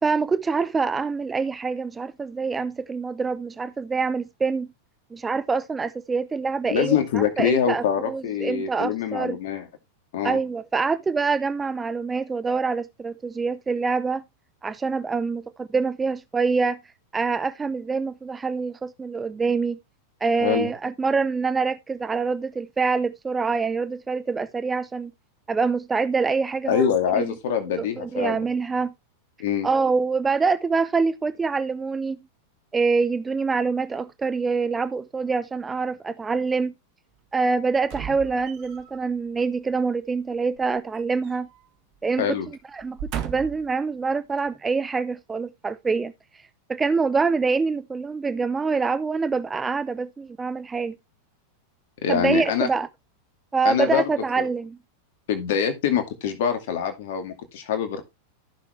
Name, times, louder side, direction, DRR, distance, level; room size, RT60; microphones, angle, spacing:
voice 1, 0.0-4.7 5.1-9.4 10.2-14.2 14.6-16.8 17.1-19.8 20.2-25.1 25.5-27.4 27.8-28.9 29.6-32.2 32.7-36.7 37.3-41.5 42.0-42.4 42.7-43.0 43.2-46.1 46.7-51.0 52.1-52.9 53.5-54.8, right 4 dB, 15° right, 0.6 m, -25 dB
voice 2, 6.7-9.7 10.1-10.4 20.4-20.7 26.7-28.4 29.4-29.7 42.2-42.5 52.0-52.7 53.6-54.0 54.4-54.5 55.3-58.0, left 8 dB, 55° left, 2.3 m, -24 dB
sound 1, 37.8-39.0 40.5-41.7 42.0-42.2 42.8-43.7 44.4-44.5, right 9 dB, 40° right, 1.7 m, -36 dB
14.5 x 6.4 x 3.2 m
figure-of-eight pair, 90°, 0 cm